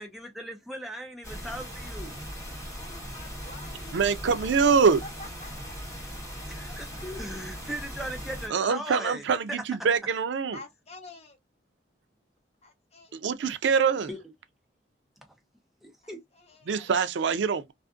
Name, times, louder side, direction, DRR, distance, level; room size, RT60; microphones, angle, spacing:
voice 1, 0.0-2.2 6.5-9.6 14.1-14.2 15.8-16.2, right 1 dB, ahead, 0.7 m, -38 dB
sound 1, 1.2-8.5, equal, 20° left, 1.3 m, -39 dB
voice 2, 2.8-4.7 5.0-5.7 6.7-7.0 7.4-7.5 10.5-11.4 12.6-13.2 16.4-16.9, left 2 dB, 35° left, 0.8 m, -47 dB
voice 3, 3.9-5.0 8.5-10.6 13.1-14.1 16.7-17.7, right 5 dB, 85° right, 0.4 m, -24 dB
2.4 x 2.4 x 2.4 m
head